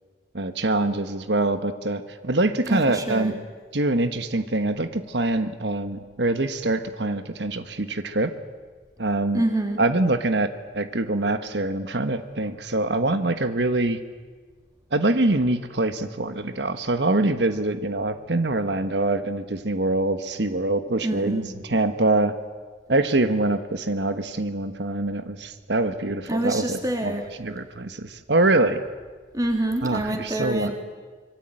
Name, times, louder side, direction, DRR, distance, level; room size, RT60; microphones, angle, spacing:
voice 1, 0.3-3.3 3.7-8.3 9.0-9.4 9.8-14.0 14.9-22.3 22.9-28.8 29.8-30.7, right 2 dB, 70° right, 9 dB, 1.4 m, -24 dB
voice 2, 2.7-3.3 9.3-9.8 21.0-21.5 26.3-27.2 29.3-30.7, right 1 dB, 20° right, 3 dB, 3.5 m, -26 dB
25.5 x 22.5 x 9.1 m, 1.5 s
head